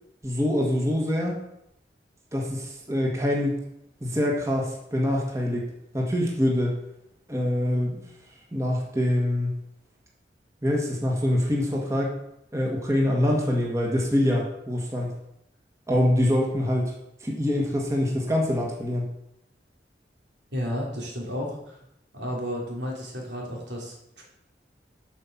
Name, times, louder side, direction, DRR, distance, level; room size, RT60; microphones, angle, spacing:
voice 1, 0.2-1.4 2.3-3.6 4.0-5.7 5.9-6.8 7.3-8.0 8.5-9.5 10.6-12.1 12.5-15.1 15.9-16.9 17.2-19.1, left 1 dB, 15° right, -1 dB, 1.6 m, -25 dB
voice 2, 20.5-21.8 22.1-24.2, equal, 85° right, -2 dB, 3.2 m, -32 dB
8.3 x 5.5 x 7.3 m, 0.79 s
head